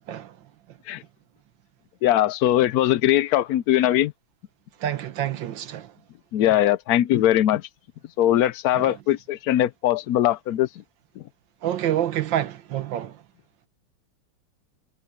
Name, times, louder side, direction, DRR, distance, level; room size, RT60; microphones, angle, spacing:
voice 1, 2.0-4.1 6.3-7.7 8.2-10.7, left 12 dB, 70° left, 1.0 m, -21 dB
voice 2, 4.8-5.9 8.7-8.9 11.6-13.2, right 11 dB, 90° right, 1.8 m, -27 dB
omnidirectional pair, 2.0 m